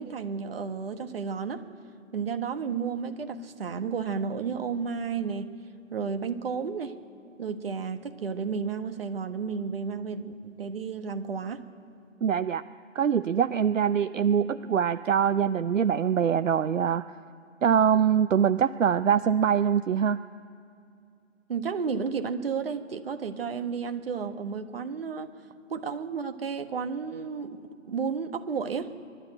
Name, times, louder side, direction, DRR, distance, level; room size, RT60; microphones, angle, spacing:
voice 1, 0.0-1.6 2.1-5.5 5.9-6.9 7.4-11.6 21.5-25.3 25.7-28.9, right 6 dB, 45° right, 7 dB, 1.5 m, -32 dB
voice 2, 12.2-12.6 12.9-17.0 17.6-20.2, right 8 dB, 70° right, 12 dB, 0.7 m, -23 dB
23.0 x 12.5 x 8.9 m, 2.6 s
figure-of-eight pair, 150°, 40 cm